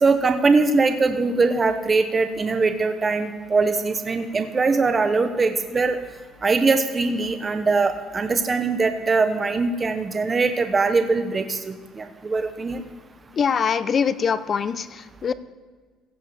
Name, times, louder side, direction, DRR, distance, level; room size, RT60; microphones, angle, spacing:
voice 1, 0.0-6.0 6.4-12.8, right 4 dB, 25° right, 8 dB, 0.9 m, -22 dB
voice 2, 13.3-15.3, left 6 dB, 40° left, 15 dB, 0.5 m, -23 dB
16.0 x 5.5 x 7.0 m, 1.5 s
cardioid pair, 110°, 0 cm